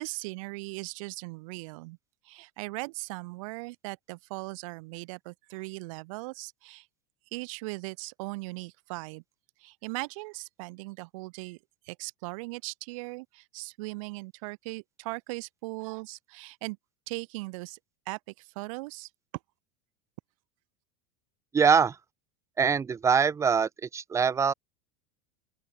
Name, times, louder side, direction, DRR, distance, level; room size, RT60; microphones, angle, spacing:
voice 1, 0.0-2.0 2.2-6.9 7.3-9.2 9.6-11.6 11.8-16.8 17.1-17.8 18.1-19.1, right 25 dB, 60° right, 6.2 m, -39 dB
voice 2, 21.5-22.0 22.6-24.5, right 6 dB, 15° right, 3.1 m, -23 dB
open air
supercardioid pair, 170°, 19 cm